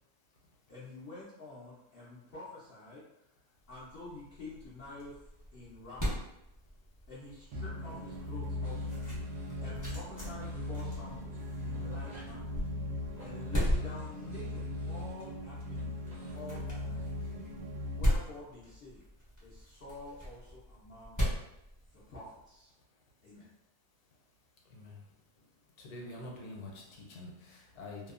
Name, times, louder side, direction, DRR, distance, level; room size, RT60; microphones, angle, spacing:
voice 1, 0.7-3.0 3.7-5.2 5.5-6.2 7.1-8.9 9.6-12.5 13.2-17.0 18.0-19.1 19.4-21.3 21.9-22.7 23.2-23.5, left 2 dB, 90° left, 0.5 m, -48 dB
sound 1, 3.7-22.4, equal, 25° left, 0.4 m, -38 dB
voice 2, 7.5-18.1, left 1 dB, 80° right, 1.2 m, -39 dB
sound 2, 8.6-9.9 10.2-12.4 13.1-16.4, right 1 dB, 45° right, 0.5 m, -58 dB
voice 3, 25.8-28.1, left 2 dB, 70° left, 1.1 m, -46 dB
2.8 x 2.0 x 2.4 m
omnidirectional pair, 1.7 m